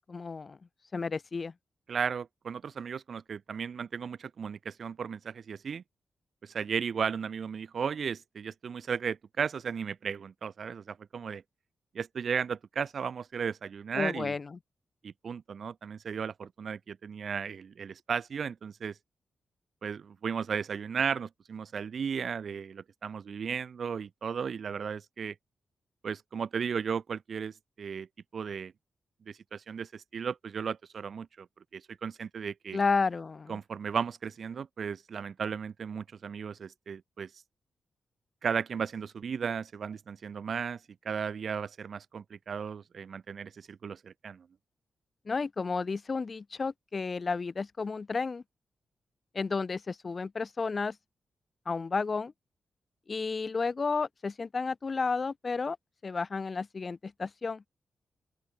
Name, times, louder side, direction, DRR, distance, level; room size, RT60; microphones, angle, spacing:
voice 1, 0.1-0.6 0.9-1.5 13.9-14.6 32.7-33.6 45.3-48.4 49.3-51.0 51.7-52.3 53.1-55.8 56.0-57.6, left 4 dB, 30° left, 0.5 m, -32 dB
voice 2, 1.9-5.8 6.4-11.4 11.9-14.3 15.0-19.0 19.8-25.3 26.0-28.1 28.3-28.7 29.3-31.5 31.7-32.8 33.5-37.4 38.4-44.4, right 6 dB, 50° right, 0.7 m, -35 dB
open air
wide cardioid pair, 170°, 0 cm